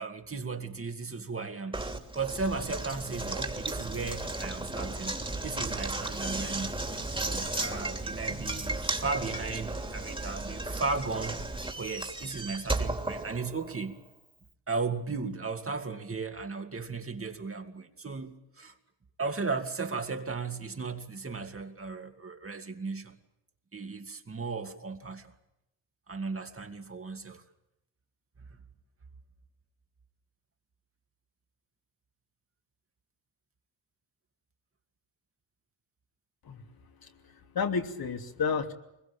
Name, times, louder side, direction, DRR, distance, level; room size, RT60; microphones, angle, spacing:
voice 1, 0.0-1.8 2.1-5.2 5.4-6.8 7.2-11.4 11.8-14.0 14.7-18.7 19.2-23.2 23.7-25.3 26.1-27.4 28.5-28.6, right 4 dB, 30° right, 2.7 m, -35 dB
Knock, 1.7-13.9, right 2 dB, 10° right, 3.1 m, -35 dB
voice 2, 37.0-38.7, left 5 dB, 60° left, 3.2 m, -32 dB
23.5 x 21.5 x 8.9 m
cardioid pair, 85°, 42 cm